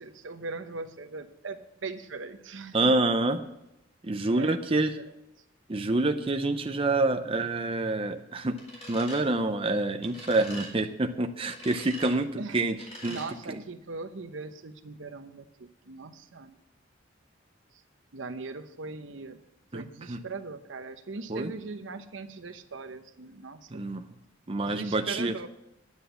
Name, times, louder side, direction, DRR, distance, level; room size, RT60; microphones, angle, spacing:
voice 1, 0.0-3.0 4.3-4.6 12.4-12.6 13.1-16.5 18.1-19.4 19.7-23.8 24.7-25.5, right 3 dB, 75° right, 9 dB, 0.9 m, -40 dB
voice 2, 2.7-3.4 4.0-5.0 5.7-8.6 8.9-13.2 13.5-13.6 19.7-20.2 21.3-21.5 23.7-24.0 24.5-25.4, right 2 dB, 30° right, 6 dB, 0.6 m, -27 dB
sound 1, 8.6-9.2 10.0-10.7 11.5-12.1 12.8-13.3, equal, 35° left, 4.1 m, -43 dB
10.0 x 9.8 x 6.9 m, 0.84 s
head